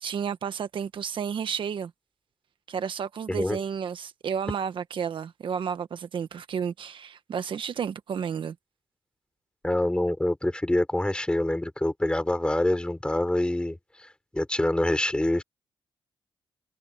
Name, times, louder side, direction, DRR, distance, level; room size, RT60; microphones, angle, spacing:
voice 1, 0.0-1.9 2.7-8.5, right 7 dB, 65° right, 1.3 m, -32 dB
voice 2, 3.3-3.6 9.6-15.4, left 1 dB, 10° left, 5.0 m, -26 dB
cardioid pair, 80°, 9 cm